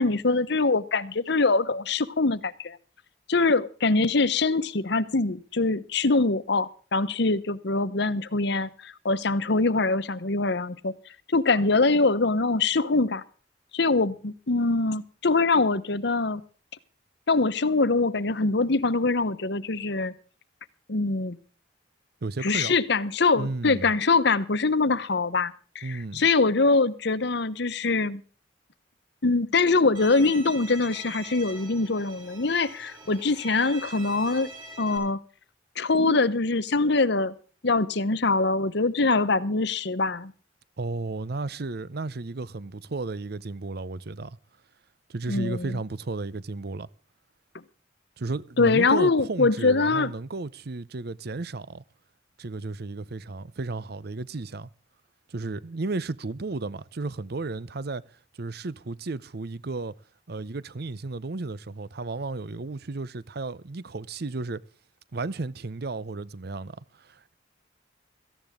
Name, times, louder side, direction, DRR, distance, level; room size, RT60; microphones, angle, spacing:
voice 1, 0.0-2.8 3.3-10.9 11.3-13.2 13.7-16.4 17.3-20.1 20.9-21.4 22.4-28.2 29.2-34.5 34.8-35.2 35.8-37.3 37.6-40.3 45.3-45.8 48.6-50.1, left 3 dB, 65° left, 1.0 m, -23 dB
voice 2, 22.2-22.8 23.3-23.9 25.8-26.3 40.8-44.4 45.1-46.9 48.2-51.8 52.4-54.7 55.3-58.0 58.4-59.9 60.3-64.6 65.1-67.3, right 3 dB, 55° right, 0.7 m, -33 dB
Bowed string instrument, 29.9-35.0, right 2 dB, 25° right, 7.8 m, -43 dB
17.5 x 15.0 x 3.7 m
head